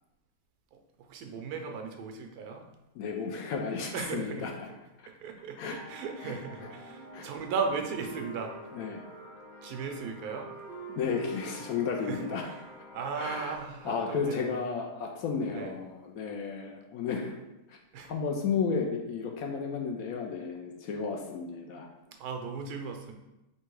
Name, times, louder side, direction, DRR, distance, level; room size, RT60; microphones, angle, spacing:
voice 1, 0.7-2.7 3.9-4.8 5.2-8.7 9.6-10.5 12.0-12.6 12.9-14.6 15.5-15.8 17.9-18.1 22.1-23.1, right 5 dB, 75° right, 4 dB, 1.0 m, -37 dB
voice 2, 3.0-4.5 5.6-5.8 6.2-6.3 7.1-7.3 8.7-9.0 11.0-12.5 13.2-13.5 13.8-17.4 17.7-17.8 18.1-21.9, left 5 dB, 70° left, 1 dB, 1.0 m, -33 dB
sound 1, 5.6-16.7, left 1 dB, 30° left, 1.0 m, -52 dB
Wind instrument woodwind instrument, 6.6-8.7 9.0-10.1 10.3-12.5, right 6 dB, 60° right, 0.7 m, -48 dB
3.4 x 2.8 x 4.6 m, 0.96 s
omnidirectional pair, 1.7 m